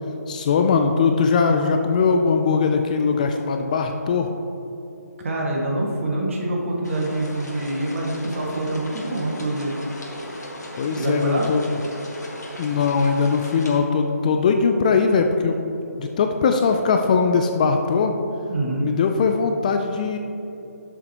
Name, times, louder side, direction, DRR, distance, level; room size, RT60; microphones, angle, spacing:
voice 1, 0.3-4.3 10.8-11.6 12.6-15.6 15.9-18.1 18.8-20.2, left 5 dB, 25° left, 5 dB, 0.4 m, -20 dB
voice 2, 5.2-9.7 11.0-11.4 18.5-18.9, right 1 dB, 50° right, -2 dB, 1.9 m, -25 dB
sound 1, 6.8-13.8, left 1 dB, 75° left, 1.8 m, -37 dB
11.0 x 6.7 x 3.0 m, 2.9 s
figure-of-eight pair, 150°, 9 cm